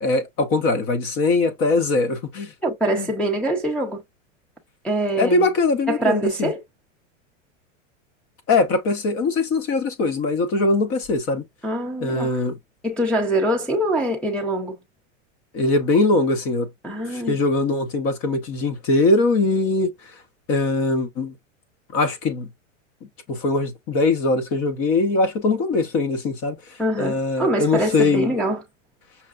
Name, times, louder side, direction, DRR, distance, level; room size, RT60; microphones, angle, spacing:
voice 1, 0.0-2.5 3.0-3.1 5.1-6.5 8.5-11.4 12.0-12.6 15.5-16.7 17.1-19.9 20.5-21.3 21.9-22.5 23.3-28.3, left 3 dB, 35° left, 0.9 m, -21 dB
voice 2, 2.6-4.0 4.8-5.5 5.9-6.6 11.6-12.4 12.8-14.7 16.8-17.4 26.8-28.6, right 1 dB, 5° left, 0.6 m, -24 dB
5.7 x 2.3 x 2.3 m
supercardioid pair, 125°, 38 cm